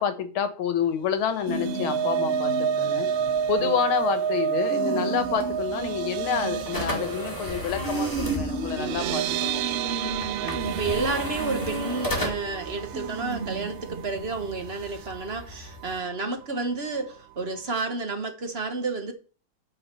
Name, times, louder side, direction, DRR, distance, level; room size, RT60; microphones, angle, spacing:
voice 1, 0.0-3.1 3.5-10.0, left 8 dB, 80° left, 1.9 m, -28 dB
sound 1, 1.2-15.5 15.8-16.0 16.3-16.5, right 8 dB, 75° right, 1.3 m, -30 dB
sound 2, 1.5-4.0 4.3-4.4 4.7-15.1, right 3 dB, 55° right, 0.7 m, -35 dB
sound 3, 5.2-16.0, left 1 dB, 10° left, 1.9 m, -36 dB
voice 2, 8.8-9.4 10.4-19.1, right 3 dB, 35° right, 1.3 m, -31 dB
9.0 x 4.9 x 6.7 m
omnidirectional pair, 2.3 m